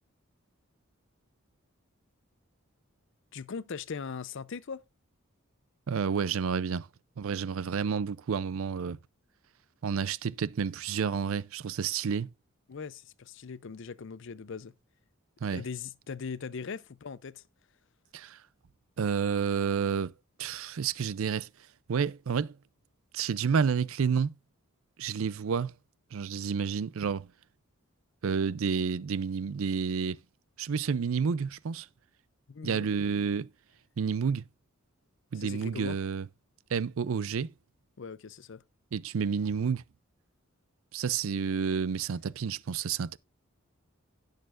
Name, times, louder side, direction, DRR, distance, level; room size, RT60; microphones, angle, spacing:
voice 1, 3.3-4.8 12.7-14.7 15.5-17.4 32.5-32.9 35.4-36.0 38.0-38.6, left 5 dB, 60° left, 0.5 m, -40 dB
voice 2, 5.9-6.9 7.2-9.0 9.8-12.3 15.4-15.6 18.1-18.4 19.0-20.1 20.4-21.5 21.9-22.5 23.1-24.3 25.0-25.7 26.1-27.3 28.2-30.2 30.6-31.9 32.6-33.5 34.0-34.4 35.3-36.3 36.7-37.5 38.9-39.8 40.9-43.2, right 6 dB, 70° right, 0.4 m, -30 dB
16.5 x 6.6 x 2.4 m
head